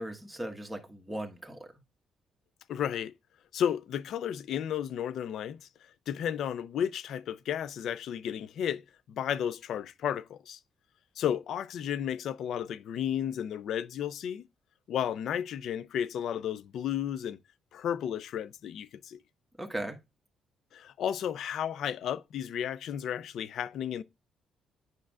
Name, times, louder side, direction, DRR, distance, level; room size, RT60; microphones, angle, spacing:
voice 1, 0.0-1.7 19.6-20.0, right 1 dB, 5° right, 1.3 m, -38 dB
voice 2, 2.7-3.1 3.5-5.7 6.1-8.8 9.1-10.6 11.2-14.4 14.9-17.4 17.7-19.2 20.7-24.0, left 9 dB, 70° left, 0.4 m, -33 dB
8.5 x 5.2 x 2.4 m
cardioid pair, 90°, 0 cm